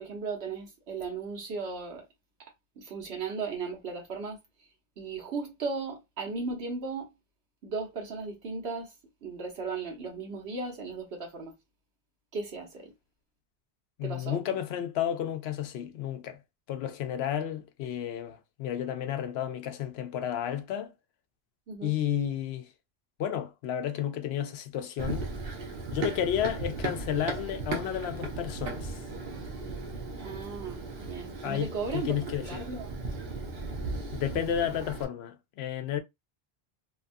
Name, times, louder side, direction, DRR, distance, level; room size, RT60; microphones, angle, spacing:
voice 1, 0.0-2.1 2.8-4.7 5.0-7.1 7.6-8.9 9.2-11.6 12.3-12.9 14.0-14.4 21.7-21.9 30.2-32.9, right 4 dB, 85° right, 1.2 m, -36 dB
voice 2, 14.0-16.4 16.7-20.9 21.8-22.7 23.2-25.3 25.9-29.0 31.4-32.7 34.1-36.0, left 10 dB, 80° left, 0.8 m, -32 dB
Run, 25.0-35.0, right 3 dB, 70° right, 0.9 m, -37 dB
2.9 x 2.3 x 2.5 m
omnidirectional pair, 1.0 m